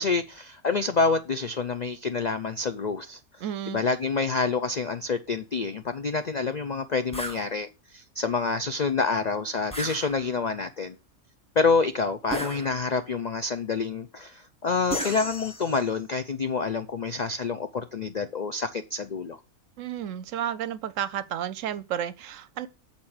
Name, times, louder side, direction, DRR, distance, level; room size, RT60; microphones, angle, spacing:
voice 1, 0.0-3.2 3.7-7.7 7.9-11.0 11.6-19.4, left 4 dB, 80° left, 0.3 m, -27 dB
voice 2, 3.4-3.8 19.8-22.7, right 10 dB, 65° right, 0.9 m, -32 dB
sound 1, 7.1-7.4 9.7-10.5 12.3-13.1 14.9-16.0, equal, 5° left, 1.5 m, -35 dB
7.5 x 4.4 x 6.4 m
omnidirectional pair, 1.6 m